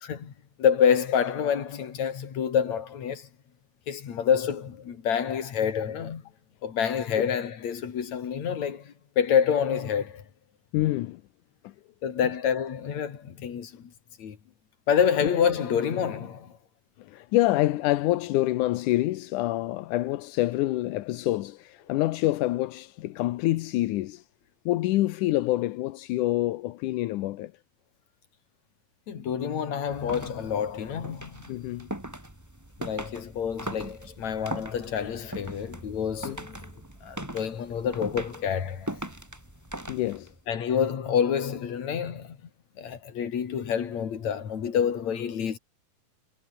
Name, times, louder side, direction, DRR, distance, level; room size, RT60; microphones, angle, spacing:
voice 1, 0.0-0.3 0.6-3.3 3.9-6.2 6.6-10.2 12.0-13.9 14.2-14.4 14.9-16.6 29.1-31.6 32.8-36.7 37.0-38.9 40.5-42.4 42.8-45.6, left 8 dB, 55° left, 3.7 m, -27 dB
voice 2, 10.7-11.2 11.6-11.7 17.0-24.3 24.7-27.5 31.5-31.9 36.2-36.4 39.9-40.3, left 16 dB, 75° left, 2.2 m, -26 dB
sound 1, 29.9-40.4, right 1 dB, 5° right, 2.1 m, -40 dB
omnidirectional pair, 4.0 m